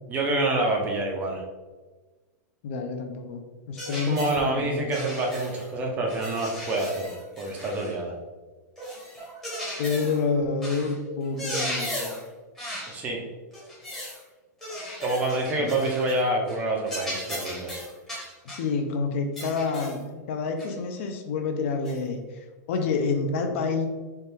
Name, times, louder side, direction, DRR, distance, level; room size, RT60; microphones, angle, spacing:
voice 1, 0.1-1.4 3.9-7.1 7.4-8.1 12.9-13.2 15.0-17.8, right 2 dB, 15° right, 0 dB, 0.4 m, -27 dB
voice 2, 2.6-4.9 9.8-12.1 15.6-15.7 18.4-20.0 20.3-23.9, left 4 dB, 45° left, 5 dB, 0.4 m, -28 dB
sound 1, 3.8-4.4 4.9-5.7 6.1-8.0 8.8-10.2 10.6-10.9 11.2-12.3 12.6-13.0 13.5-14.2 14.6-16.2 16.5-16.6 16.9-18.7 19.4-20.0 20.6-20.7 21.8-22.0, equal, 5° left, 0.8 m, -36 dB
4.3 x 2.2 x 3.3 m, 1.3 s
supercardioid pair, 170°, 10 cm